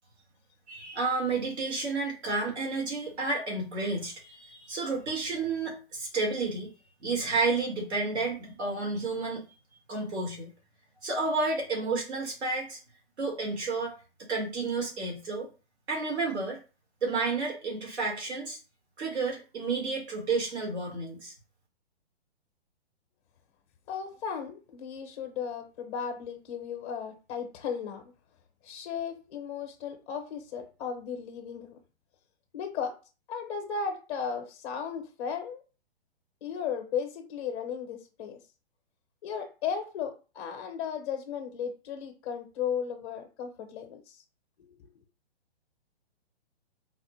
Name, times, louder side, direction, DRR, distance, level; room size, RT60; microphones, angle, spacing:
voice 1, 0.7-6.7 7.0-9.4 9.9-10.5 11.0-12.8 13.2-13.9 14.3-15.5 15.9-16.6 17.0-18.6 19.0-21.3, right 3 dB, 75° right, -1 dB, 1.7 m, -31 dB
voice 2, 23.9-28.0 28.6-31.8 32.5-32.9 33.3-35.6 36.4-38.4 39.2-44.2 44.6-44.7, left 7 dB, 25° left, 5 dB, 0.6 m, -35 dB
3.9 x 2.0 x 3.0 m, 0.33 s
hypercardioid pair, 155°, 33 cm